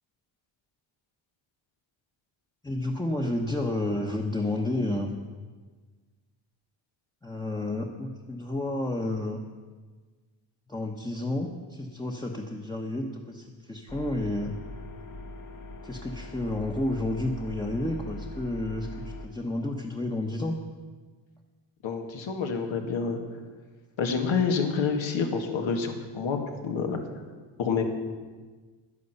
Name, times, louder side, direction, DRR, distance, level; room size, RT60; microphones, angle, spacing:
voice 1, 2.6-5.1 7.2-9.4 10.7-14.5 15.8-20.5, left 1 dB, 10° left, -1 dB, 0.9 m, -31 dB
sound 1, 13.9-19.3, left 2 dB, 45° left, 1.4 m, -41 dB
voice 2, 21.8-23.2 24.0-26.4 26.6-27.0 27.6-27.8, left 5 dB, 85° left, 4 dB, 2.1 m, -28 dB
11.0 x 11.0 x 8.1 m, 1.4 s
wide cardioid pair, 135°, 45 cm